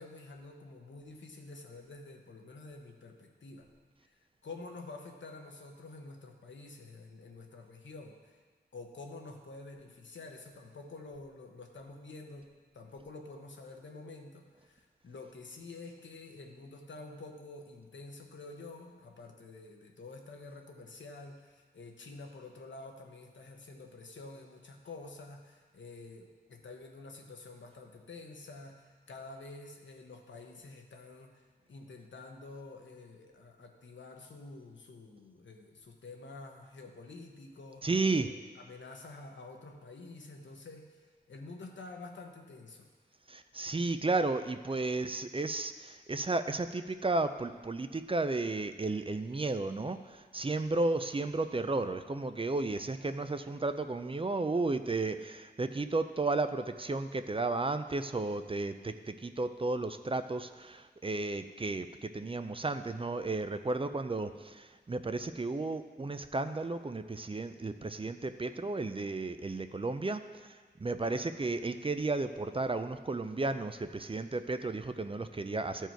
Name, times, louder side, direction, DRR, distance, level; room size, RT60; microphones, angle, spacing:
voice 1, 0.0-3.7 4.0-8.4 8.7-12.5 12.7-37.9 38.2-42.9, left 3 dB, 80° left, 3 dB, 1.0 m, -49 dB
voice 2, 37.8-38.3 43.3-70.5 70.8-75.9, right 3 dB, 30° right, 9 dB, 0.4 m, -33 dB
13.5 x 4.6 x 4.6 m, 1.4 s
wide cardioid pair, 60°, 19 cm